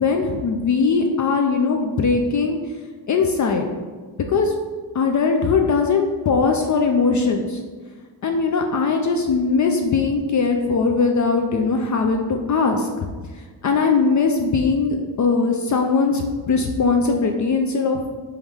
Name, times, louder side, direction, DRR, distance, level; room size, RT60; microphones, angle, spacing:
voice 1, 0.0-2.6 3.1-3.7 4.3-4.5 4.9-7.6 8.2-12.9 13.6-18.1, left 4 dB, 40° left, 3 dB, 0.4 m, -20 dB
3.5 x 3.1 x 3.4 m, 1.5 s
supercardioid pair, 70°, 49 cm